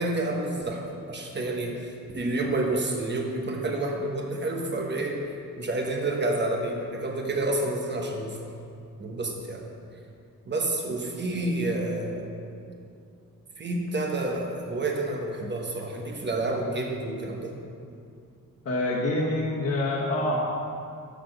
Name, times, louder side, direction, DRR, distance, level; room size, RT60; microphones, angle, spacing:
voice 1, 0.0-5.3 5.6-8.5 9.0-9.6 10.5-12.3 13.6-17.5, right 2 dB, 35° right, 1 dB, 1.1 m, -29 dB
voice 2, 18.6-20.4, left 1 dB, 45° left, -7 dB, 1.3 m, -26 dB
6.6 x 6.1 x 6.5 m, 2.4 s
wide cardioid pair, 135°, 33 cm